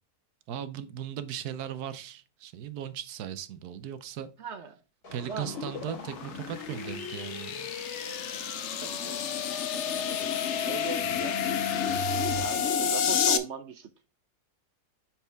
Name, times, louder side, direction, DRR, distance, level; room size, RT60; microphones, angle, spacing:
voice 1, 0.5-4.3 5.1-7.7, right 9 dB, 85° right, 1.2 m, -38 dB
voice 2, 4.4-4.8 5.3-5.6 8.8-9.2 10.5-11.4 11.8-12.0 12.3-13.9, right 6 dB, 60° right, 0.8 m, -39 dB
sound 1, 5.0-12.4, right 1 dB, 80° left, 2.6 m, -42 dB
sound 2, 5.4-13.4, left 8 dB, 60° left, 0.9 m, -30 dB
9.1 x 4.5 x 3.4 m
omnidirectional pair, 1.6 m